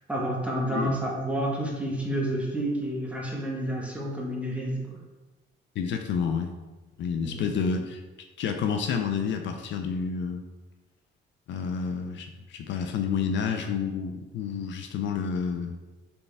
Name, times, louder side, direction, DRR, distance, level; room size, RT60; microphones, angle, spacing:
voice 1, 0.1-5.0 7.2-7.4, right 1 dB, 5° right, -3 dB, 1.1 m, -29 dB
voice 2, 5.8-6.5 7.0-8.0 8.4-10.4 11.5-15.8, left 6 dB, 70° left, 6 dB, 0.5 m, -29 dB
4.3 x 3.4 x 3.3 m, 1.2 s
cardioid pair, 90°, 20 cm